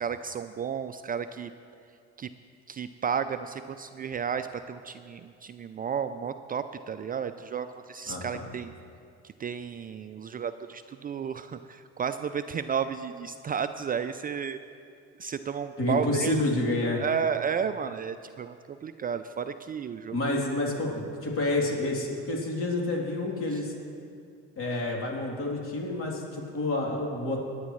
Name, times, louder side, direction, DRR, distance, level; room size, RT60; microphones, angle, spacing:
voice 1, 0.0-1.5 2.2-2.3 2.7-8.7 9.2-14.6 15.2-16.4 16.9-20.4 23.5-23.6, right 7 dB, 30° right, 10 dB, 0.4 m, -32 dB
voice 2, 8.1-8.4 15.8-17.0 20.1-23.7 24.6-27.4, left 2 dB, 45° left, -1 dB, 3.1 m, -29 dB
19.0 x 10.0 x 3.2 m, 2.4 s
supercardioid pair, 80°, 30 cm